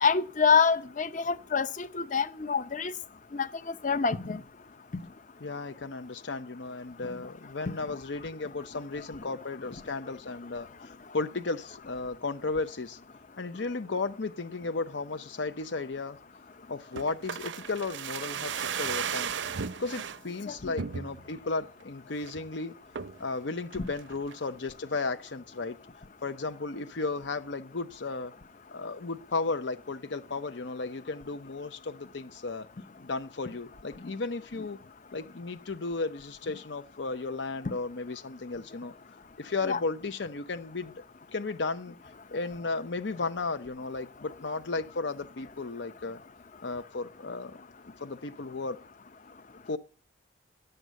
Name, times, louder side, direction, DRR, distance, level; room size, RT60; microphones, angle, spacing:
voice 1, 0.0-2.9 3.3-3.5 3.8-4.4 23.8-23.9 39.7-39.8, left 5 dB, 40° left, 0.8 m, -26 dB
voice 2, 5.4-13.0 13.4-16.2 16.7-19.3 19.8-22.7 23.2-25.8 26.2-28.3 28.7-32.7 33.0-34.8 35.1-38.9 39.4-41.0 41.3-41.9 42.3-46.2 46.6-47.6 47.8-48.8 49.7-49.8, left 3 dB, 70° left, 0.8 m, -34 dB
sound 1, 17.0-20.2 20.8-21.4 21.8-21.9 22.1-22.5 23.0-23.3 23.7-24.4 24.7-24.8, right 7 dB, 75° right, 0.6 m, -35 dB
11.0 x 7.9 x 9.2 m
head